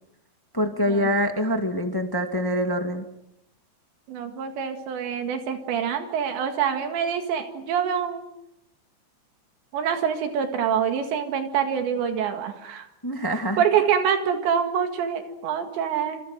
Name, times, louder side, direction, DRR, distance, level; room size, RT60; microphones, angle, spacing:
voice 1, 0.5-3.0 13.0-13.6, equal, 25° left, 5 dB, 0.5 m, -25 dB
voice 2, 4.1-8.2 9.7-12.9 13.6-16.2, right 8 dB, 80° right, 6 dB, 4.2 m, -25 dB
28.5 x 27.5 x 6.3 m, 0.79 s
omnidirectional pair, 5.1 m